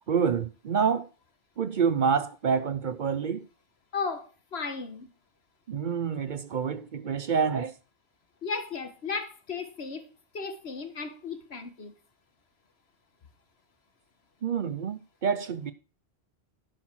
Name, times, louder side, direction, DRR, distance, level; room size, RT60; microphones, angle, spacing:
voice 1, 0.1-1.1 1.6-3.4 5.7-7.7 14.4-15.7, right 6 dB, 55° right, 0.7 m, -27 dB
voice 2, 3.9-5.1 8.4-10.1 10.3-11.9, left 4 dB, 70° left, 1.7 m, -35 dB
11.0 x 5.9 x 6.1 m
omnidirectional pair, 1.1 m